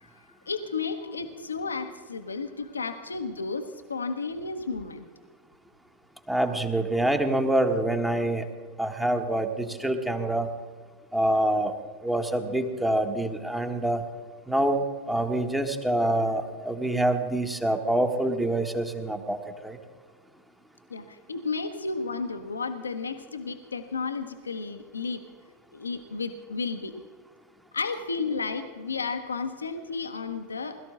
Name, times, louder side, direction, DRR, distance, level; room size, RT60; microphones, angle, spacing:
voice 1, 0.0-5.1 20.9-25.2 25.7-26.9 27.7-30.8, left 4 dB, 75° left, 8 dB, 1.1 m, -33 dB
voice 2, 6.3-8.5 8.8-10.5 11.1-11.7 12.0-14.0 14.5-19.8, right 1 dB, 5° right, 5 dB, 1.5 m, -26 dB
21.0 x 13.5 x 3.8 m, 1.5 s
figure-of-eight pair, 90°, 0 cm